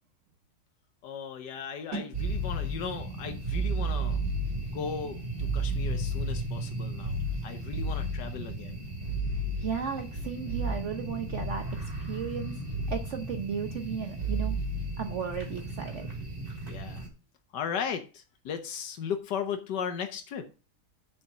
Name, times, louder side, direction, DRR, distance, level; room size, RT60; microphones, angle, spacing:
voice 1, 1.0-4.2 4.7-8.8 16.6-17.0 17.5-20.5, left 7 dB, 85° left, 6 dB, 1.6 m, -36 dB
sound 1, 1.9-7.6, right 3 dB, 80° right, 2.5 m, -48 dB
sound 2, 2.1-17.1, right 2 dB, 30° right, 2.8 m, -33 dB
voice 2, 9.3-12.5 12.9-14.6 15.0-16.1, right 6 dB, 55° right, 6 dB, 1.0 m, -35 dB
7.0 x 5.1 x 7.2 m, 0.34 s
omnidirectional pair, 1.8 m